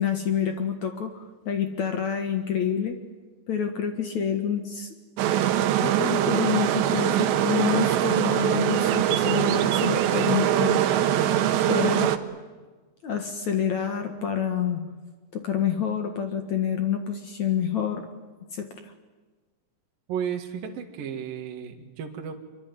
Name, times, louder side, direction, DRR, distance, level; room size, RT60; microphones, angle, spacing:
voice 1, 0.0-3.0 3.5-4.9 5.8-10.8 11.7-12.1 13.0-14.8 15.3-18.1 18.5-18.9, left 8 dB, 55° left, 7 dB, 2.3 m, -28 dB
sound 1, 5.2-12.2, right 11 dB, 80° right, 3.5 m, -22 dB
voice 2, 20.1-22.4, right 8 dB, 60° right, 3 dB, 3.4 m, -33 dB
25.5 x 24.0 x 9.7 m, 1.3 s
omnidirectional pair, 5.1 m